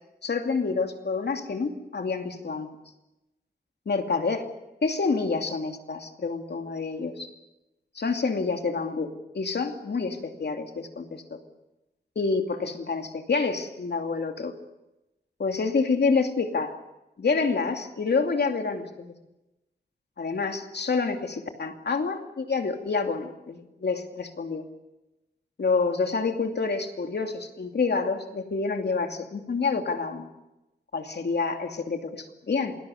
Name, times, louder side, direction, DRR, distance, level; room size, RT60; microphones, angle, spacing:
voice 1, 0.2-2.7 3.9-4.5 4.8-7.3 8.0-9.1 9.3-11.4 12.2-14.5 15.4-16.7 17.2-19.2 20.2-24.6 25.6-30.3 30.9-32.8, left 4 dB, 70° left, 5 dB, 2.6 m, -28 dB
27.5 x 19.5 x 6.6 m, 0.96 s
wide cardioid pair, 115°, 18 cm